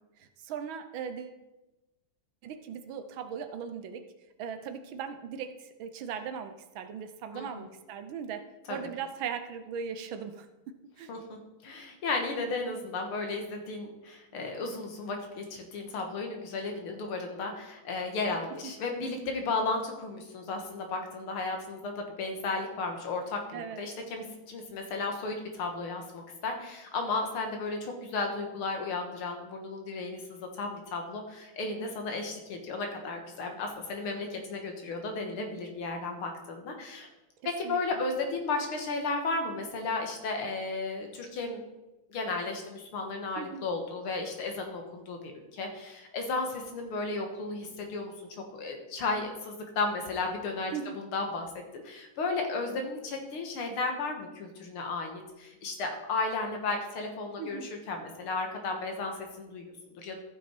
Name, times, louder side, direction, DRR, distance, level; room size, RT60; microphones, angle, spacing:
voice 1, 0.2-1.4 2.4-4.0 4.4-11.1 18.6-18.7 23.5-23.8 37.6-38.0 43.4-43.6 50.7-51.0 57.4-57.7, right 7 dB, 75° right, 9 dB, 1.5 m, -39 dB
voice 2, 7.3-7.7 8.7-8.8 11.1-37.1 37.6-41.6 42.1-48.1 48.5-51.5 51.8-60.2, left 3 dB, 85° left, 3 dB, 2.3 m, -34 dB
14.0 x 5.9 x 4.4 m, 1.0 s
omnidirectional pair, 2.3 m